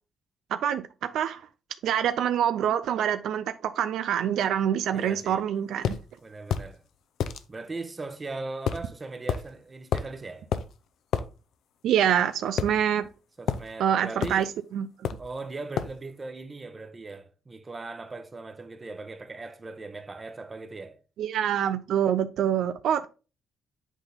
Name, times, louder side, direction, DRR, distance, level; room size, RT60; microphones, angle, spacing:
voice 1, 0.5-1.4 1.8-5.9 11.8-13.1 13.8-14.5 14.7-14.9 21.2-23.1, right 9 dB, 75° right, 0.4 m, -26 dB
voice 2, 4.9-5.4 6.2-6.8 7.5-10.5 13.4-14.5 15.2-21.0, right 3 dB, 25° right, 1.0 m, -39 dB
sound 1, 5.8-6.0 6.5-6.7 7.2-7.4 8.7-8.9 9.3-9.4 9.9-10.2 10.5-10.7 11.1-11.3 12.6-13.1 13.5-13.7 14.2-14.5 15.0-15.3 15.8-16.0, left 8 dB, 75° left, 0.6 m, -29 dB
8.1 x 4.0 x 3.5 m
cardioid pair, 90°, 0 cm